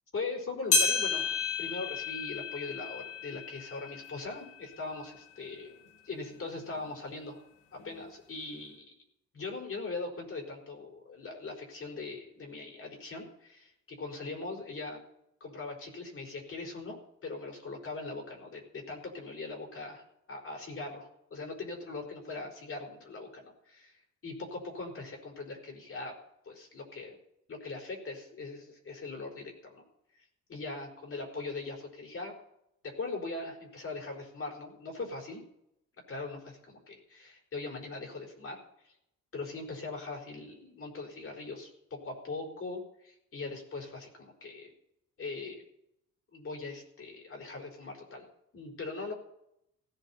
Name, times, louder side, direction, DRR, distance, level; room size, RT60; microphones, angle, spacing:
voice 1, 0.1-5.8 6.0-7.4 7.7-8.9 9.3-15.0 15.4-17.0 17.2-26.2 26.4-27.2 27.5-29.8 30.5-32.3 32.8-35.4 36.1-38.6 38.8-38.9 39.3-44.7 45.2-45.6 46.3-48.2 48.5-49.1, left 3 dB, 45° left, 0 dB, 4.9 m, -40 dB
sound 1, 0.7-5.4 5.9-6.0 6.8-6.9 7.8-7.9, left 5 dB, 80° left, 3.1 m, -32 dB
17.0 x 15.0 x 4.4 m, 0.77 s
cardioid pair, 90°, 30 cm